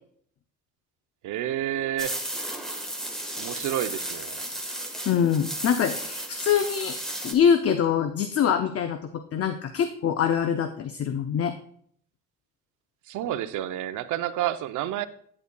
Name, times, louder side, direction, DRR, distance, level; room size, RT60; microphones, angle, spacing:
voice 1, 1.2-2.2 3.4-4.4 13.1-15.1, right 12 dB, 85° right, 12 dB, 0.6 m, -29 dB
sound 1, 2.0-7.3, right 1 dB, ahead, 1.3 m, -34 dB
voice 2, 5.1-7.0 7.2-11.5, left 8 dB, 50° left, 8 dB, 0.6 m, -24 dB
9.5 x 8.2 x 2.2 m, 0.62 s
cardioid pair, 90°, 30 cm